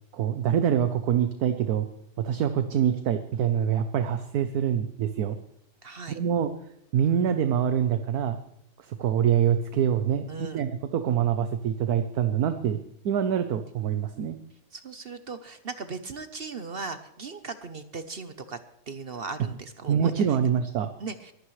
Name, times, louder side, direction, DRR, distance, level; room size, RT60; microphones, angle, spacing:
voice 1, 0.1-1.9 2.2-5.4 6.1-6.5 6.9-8.4 8.8-12.8 13.0-14.4 19.9-20.9, right 8 dB, 65° right, 9 dB, 1.2 m, -25 dB
voice 2, 5.8-6.2 10.3-10.6 14.7-18.6 18.9-20.4 21.0-21.3, right 4 dB, 45° right, 10 dB, 0.8 m, -38 dB
22.0 x 14.5 x 3.2 m, 0.76 s
omnidirectional pair, 1.8 m